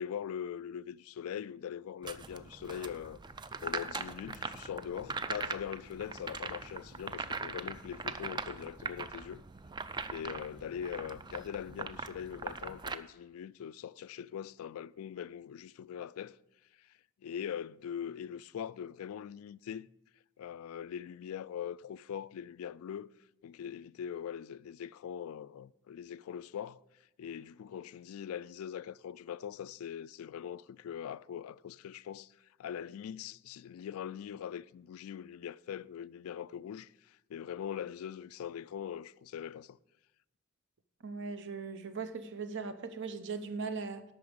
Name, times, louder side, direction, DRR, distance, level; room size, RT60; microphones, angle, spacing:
voice 1, 0.0-3.2 3.6-9.4 10.1-16.4 16.8-16.9 17.2-19.9 20.4-23.1 23.4-26.8 27.2-32.3 32.6-39.8, left 8 dB, 85° left, 0.3 m, -42 dB
sound 1, 2.0-12.9, right 4 dB, 20° right, 0.4 m, -41 dB
Bowed string instrument, 4.3-9.7, left 3 dB, 80° right, 3.0 m, -61 dB
voice 2, 41.0-44.0, right 4 dB, 60° right, 0.8 m, -39 dB
8.5 x 5.9 x 7.9 m
head